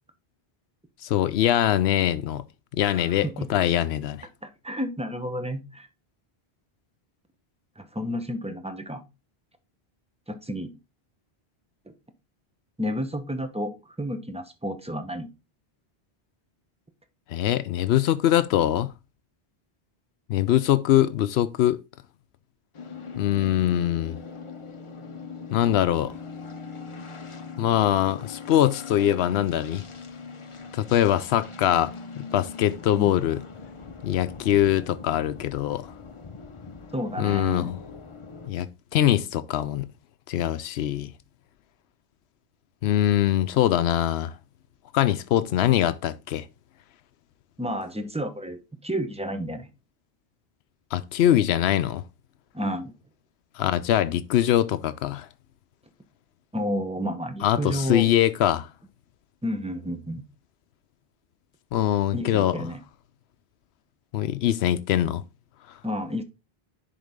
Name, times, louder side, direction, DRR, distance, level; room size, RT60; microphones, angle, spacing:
voice 1, 1.0-2.4 2.7-4.3 17.3-18.9 20.3-21.8 23.2-24.2 25.5-26.1 27.6-29.8 30.7-33.4 34.0-35.9 37.2-37.8 38.5-39.9 40.3-41.1 42.8-44.3 44.9-46.4 50.9-52.0 53.6-55.3 57.4-58.7 61.7-62.6 64.1-65.2, left 12 dB, 85° left, 0.8 m, -23 dB
voice 2, 2.8-3.5 4.4-5.9 7.8-9.0 10.3-10.7 12.8-15.3 33.0-33.2 36.9-37.7 47.6-49.7 52.5-52.9 56.5-58.1 59.4-60.2 62.1-62.8 65.8-66.2, equal, 5° right, 0.7 m, -31 dB
sound 1, 22.7-38.5, left 5 dB, 35° left, 0.7 m, -41 dB
10.5 x 3.9 x 3.5 m
omnidirectional pair, 1.0 m